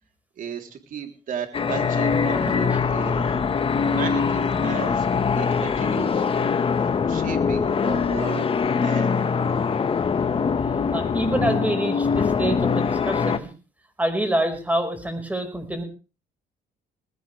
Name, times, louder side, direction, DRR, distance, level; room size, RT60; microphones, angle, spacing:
voice 1, 0.4-3.2 3.8-5.1 5.4-6.2 6.8-8.5 8.8-9.3, right 7 dB, 50° right, 5 dB, 3.6 m, -34 dB
sound 1, 1.5-13.4, left 5 dB, 35° left, 1.4 m, -23 dB
voice 2, 2.4-2.8 3.7-3.8 10.9-13.5 14.0-15.8, right 1 dB, 10° right, 7 dB, 5.1 m, -27 dB
19.5 x 16.5 x 3.4 m, 0.34 s
cardioid pair, 110°, 17 cm